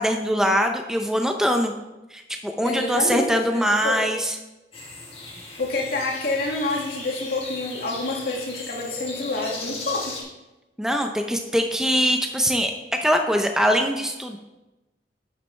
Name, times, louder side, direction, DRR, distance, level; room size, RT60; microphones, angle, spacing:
voice 1, 0.0-1.7 2.1-4.4 10.8-12.7 13.0-14.4, equal, 5° right, 4 dB, 0.5 m, -22 dB
voice 2, 2.6-4.0 5.6-10.2, left 2 dB, 60° left, -1 dB, 2.0 m, -28 dB
sound 1, 4.7-10.2, left 3 dB, 35° left, 2.0 m, -37 dB
10.5 x 7.6 x 3.3 m, 1.0 s
head